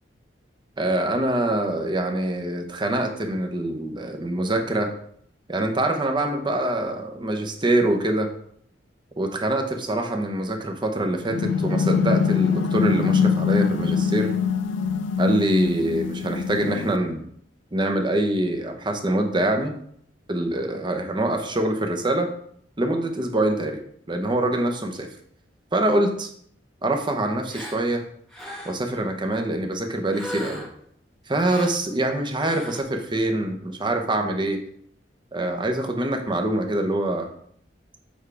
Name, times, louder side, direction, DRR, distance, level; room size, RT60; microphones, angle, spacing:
voice 1, 0.8-4.9 5.5-8.3 9.2-14.3 15.2-17.3 17.7-19.7 20.3-22.3 22.8-23.8 24.1-25.1 25.7-26.3 26.8-28.0 28.6-30.7 31.3-34.6 35.3-37.3, right 1 dB, 25° right, 4 dB, 0.8 m, -24 dB
sound 1, 11.3-17.0, left 6 dB, 90° left, 0.4 m, -23 dB
Gasp, 27.5-27.8 28.3-28.9 30.1-30.8 31.4-31.8 32.3-32.8, equal, ahead, 1.2 m, -37 dB
7.2 x 4.8 x 3.3 m, 0.65 s
head